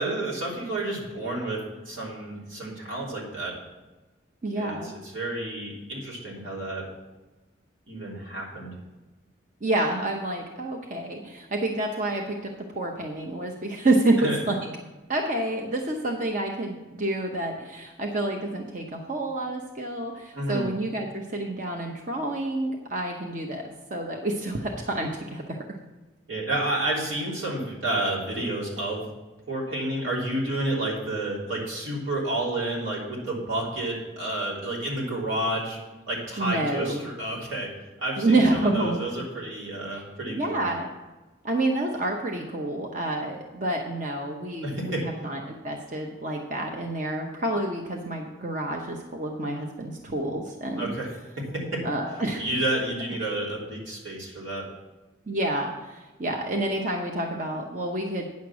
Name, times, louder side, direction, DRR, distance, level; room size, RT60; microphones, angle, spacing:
voice 1, 0.0-3.5 4.6-6.9 7.9-8.7 14.2-14.4 20.3-20.7 26.3-29.0 29.5-35.8 36.1-37.7 38.0-40.7 44.6-45.0 50.8-51.1 51.5-51.8 52.3-54.7, right 1 dB, 85° right, -5 dB, 3.4 m, -30 dB
voice 2, 4.4-5.0 9.6-12.5 12.7-14.6 15.1-23.6 23.9-25.6 36.4-37.0 38.2-39.0 39.9-40.0 40.3-40.9 41.4-50.9 51.8-52.4 55.3-58.3, right 2 dB, 40° right, 2 dB, 0.8 m, -28 dB
9.5 x 6.5 x 6.1 m, 1.2 s
head